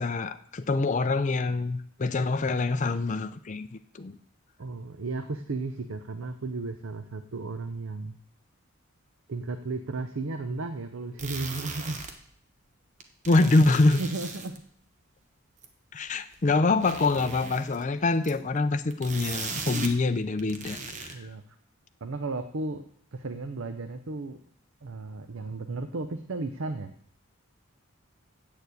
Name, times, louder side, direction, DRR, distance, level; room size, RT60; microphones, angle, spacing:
voice 1, 0.0-3.7 4.0-4.2 13.3-14.0 15.9-21.1, left 3 dB, 35° left, 9 dB, 0.4 m, -25 dB
voice 2, 4.6-8.1 9.3-12.0 14.0-14.6 21.1-21.4 22.0-22.8 23.1-24.4 24.8-26.9, right 3 dB, 65° right, 8 dB, 0.6 m, -34 dB
sound 1, 11.2-12.1 13.0-14.6 15.6-15.7 16.3-16.4 16.7-17.8 18.2-18.5 18.9-20.0 20.2-21.1, right 4 dB, 35° right, 1.0 m, -38 dB
7.9 x 6.8 x 8.3 m, 0.64 s
head